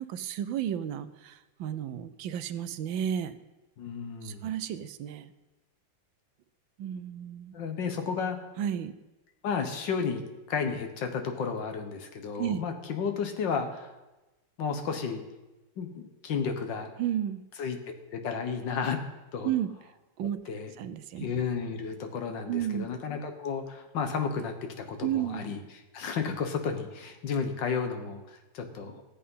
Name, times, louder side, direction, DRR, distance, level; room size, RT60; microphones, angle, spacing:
voice 1, 0.0-3.4 4.2-5.3 6.8-7.5 8.6-8.9 12.4-12.6 17.0-17.4 19.4-19.7 20.2-20.4 20.8-21.2 22.5-22.9 25.0-25.4, right 10 dB, 80° right, 12 dB, 1.4 m, -32 dB
voice 2, 3.8-4.5 7.5-8.5 9.4-10.2 10.5-14.0 14.6-15.2 15.8-16.9 17.6-17.8 18.1-19.0 19.3-19.5 20.5-20.7 21.2-25.6 25.9-29.0, left 6 dB, 70° left, 6 dB, 1.8 m, -32 dB
13.5 x 8.6 x 5.5 m, 1.1 s
omnidirectional pair, 2.1 m